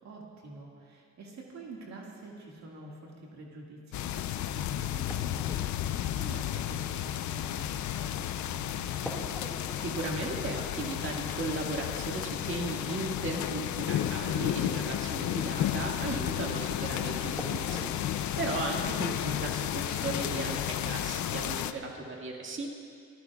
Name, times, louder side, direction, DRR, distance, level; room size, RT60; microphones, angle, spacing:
voice 1, 0.0-9.0, right 2 dB, 65° right, -2 dB, 1.9 m, -47 dB
sound 1, 3.9-21.7, left 11 dB, 70° left, 0.6 m, -32 dB
sound 2, 5.1-8.5 9.1-15.2 16.5-16.6 17.4-18.3, left 1 dB, 5° left, 2.0 m, -46 dB
voice 2, 9.8-22.7, right 2 dB, 40° right, -1 dB, 1.9 m, -36 dB
24.0 x 14.5 x 2.4 m, 2.5 s
cardioid pair, 90°, 30 cm